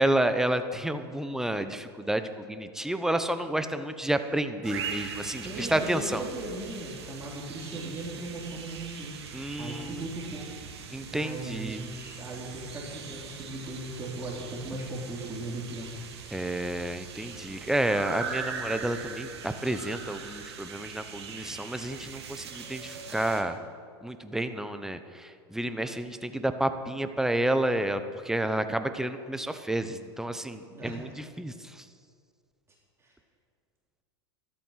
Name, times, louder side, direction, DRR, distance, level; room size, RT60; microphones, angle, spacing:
voice 1, 0.0-6.2 9.3-10.1 10.9-11.8 16.3-23.6 24.0-31.5, right 1 dB, 5° right, 9 dB, 0.9 m, -30 dB
sound 1, 4.6-23.4, right 6 dB, 80° right, 2.1 m, -41 dB
voice 2, 5.4-9.2 9.6-10.5 11.1-15.9 30.7-31.0 33.0-33.1, right 2 dB, 20° right, -3 dB, 3.6 m, -38 dB
13.0 x 12.5 x 5.9 m, 2.1 s
hypercardioid pair, 100°, 14 cm